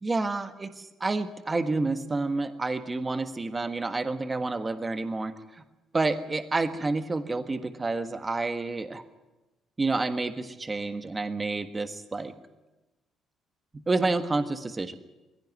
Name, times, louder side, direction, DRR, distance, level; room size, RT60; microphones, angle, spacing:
voice 1, 0.0-5.6 5.9-9.0 9.8-12.3 13.7-14.9, right 3 dB, 20° right, 8 dB, 1.5 m, -29 dB
21.0 x 16.5 x 9.6 m, 1.0 s
cardioid pair, 125°, 0 cm